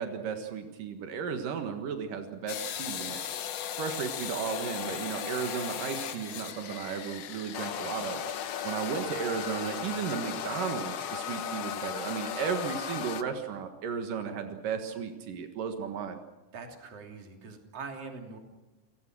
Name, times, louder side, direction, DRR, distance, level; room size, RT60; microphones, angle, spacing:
voice 1, 0.0-3.2 3.7-8.2 8.6-16.2, right 7 dB, 85° right, 6 dB, 3.2 m, -34 dB
sound 1, 2.5-13.2, left 9 dB, 60° left, 1.9 m, -36 dB
voice 2, 16.5-18.4, right 4 dB, 50° right, 3 dB, 4.0 m, -43 dB
29.0 x 19.0 x 6.2 m, 1.1 s
omnidirectional pair, 3.7 m